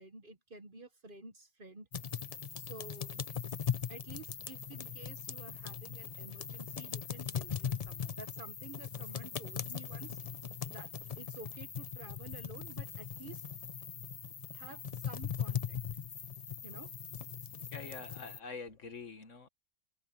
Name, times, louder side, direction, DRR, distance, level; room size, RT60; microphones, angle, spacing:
voice 1, 0.0-1.9 2.6-3.2 3.9-10.2 10.7-10.9 11.2-13.4 14.5-15.8 16.6-16.9, right 3 dB, 40° right, 1.2 m, -51 dB
sound 1, 1.9-18.4, left 7 dB, 45° left, 0.5 m, -40 dB
voice 2, 17.7-19.5, left 4 dB, 65° left, 1.8 m, -45 dB
open air
omnidirectional pair, 1.4 m